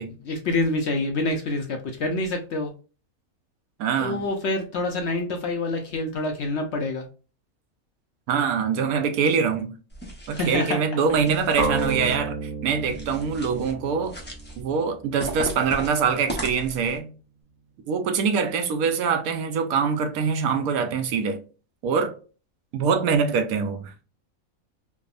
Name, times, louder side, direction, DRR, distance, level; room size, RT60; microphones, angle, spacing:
voice 1, 0.3-2.7 4.0-7.1 10.3-10.8, left 2 dB, 65° left, 0.7 m, -27 dB
voice 2, 3.8-4.2 8.3-9.7 10.3-14.2 14.6-17.1 17.9-21.4 21.8-22.1 22.7-23.9, right 6 dB, 85° right, 1.0 m, -24 dB
sound 1, 9.9-10.6 11.1-12.2 12.8-13.7 14.0-14.6 15.2-17.0, right 1 dB, 15° left, 0.3 m, -37 dB
sound 2, 11.6-15.5, right 3 dB, 65° right, 1.3 m, -31 dB
3.4 x 2.0 x 2.3 m
omnidirectional pair, 1.5 m